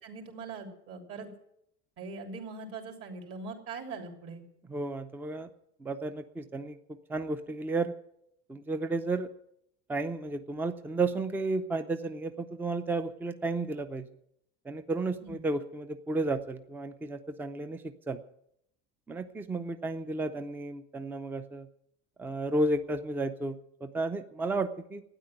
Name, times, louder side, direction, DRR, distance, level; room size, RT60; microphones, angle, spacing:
voice 1, 0.0-1.3 2.0-4.4 15.2-15.4, right 4 dB, 50° right, 3 dB, 3.2 m, -41 dB
voice 2, 4.7-5.5 5.8-6.8 7.1-7.9 8.5-9.3 9.9-14.1 14.6-18.2 19.1-21.7 22.2-25.0, right 2 dB, 5° right, 9 dB, 0.5 m, -32 dB
12.5 x 9.7 x 9.3 m, 0.75 s
cardioid pair, 165°, 29 cm